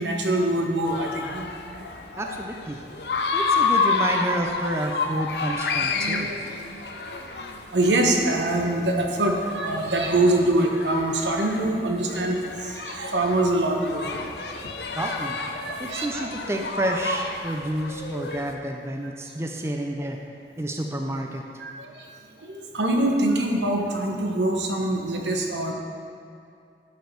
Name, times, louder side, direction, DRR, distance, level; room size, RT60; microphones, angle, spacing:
voice 1, 0.0-1.9 5.8-6.4 6.9-7.0 7.3-7.4 7.7-14.1 15.6-16.3 21.6-22.1 22.4-25.7, right 1 dB, 90° right, 2 dB, 1.0 m, -24 dB
sound 1, 0.8-18.5, left 4 dB, 70° left, 0.6 m, -30 dB
voice 2, 2.2-2.8 3.3-6.3 15.0-15.4 15.8-20.2 20.6-21.4, right 1 dB, 15° right, 2 dB, 0.5 m, -29 dB
11.5 x 5.2 x 4.6 m, 2.6 s
head